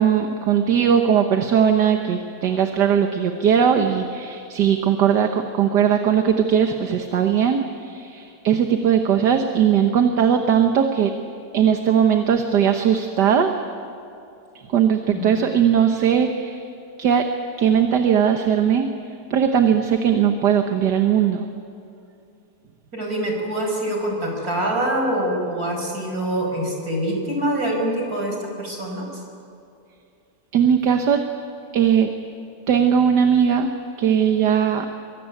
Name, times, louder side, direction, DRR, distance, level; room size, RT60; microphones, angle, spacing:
voice 1, 0.0-11.1 11.5-13.5 14.7-16.7 17.0-17.3 17.6-18.9 19.3-21.4 30.5-31.3 31.7-32.1 32.7-33.7 34.0-34.9, right 8 dB, 80° right, 5 dB, 1.8 m, -19 dB
voice 2, 22.9-29.1, right 1 dB, 60° right, 1 dB, 6.0 m, -25 dB
24.5 x 23.5 x 9.3 m, 2.6 s
omnidirectional pair, 1.8 m